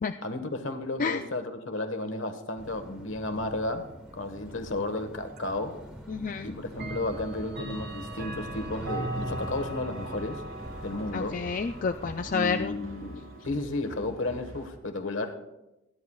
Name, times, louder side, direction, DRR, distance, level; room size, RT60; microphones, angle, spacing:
voice 1, 0.2-3.9 4.1-5.8 6.4-10.4 10.8-11.4 12.3-15.4, left 2 dB, 65° left, 7 dB, 1.4 m, -33 dB
sound 1, 2.6-12.4, equal, 5° right, 1.2 m, -44 dB
Clock, 5.4-5.5 6.7-13.5, right 2 dB, 50° right, 1.7 m, -40 dB
voice 2, 6.1-6.5 11.1-12.8, left 5 dB, 40° left, 7 dB, 0.3 m, -29 dB
sound 2, 6.7-14.7, equal, 85° right, 3.6 m, -48 dB
26.5 x 10.5 x 2.3 m, 0.92 s
head